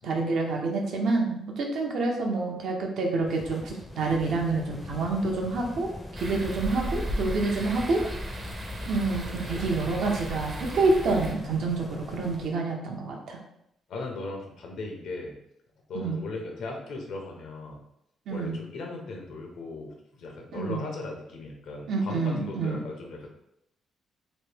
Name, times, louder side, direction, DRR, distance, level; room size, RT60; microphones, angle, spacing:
voice 1, 0.0-8.0 8.8-13.4 15.9-16.2 18.3-18.6 20.5-20.8 21.9-22.8, right 3 dB, 70° right, 1 dB, 0.7 m, -28 dB
sound 1, 3.2-12.6, left 1 dB, 20° left, 0.5 m, -42 dB
sound 2, 6.2-11.3, equal, 30° right, 0.6 m, -35 dB
voice 2, 10.3-10.7 13.9-15.4 15.9-17.8 18.3-23.3, left 3 dB, 70° left, 1 dB, 0.8 m, -38 dB
3.1 x 2.2 x 3.3 m, 0.78 s
cardioid pair, 90°, 0 cm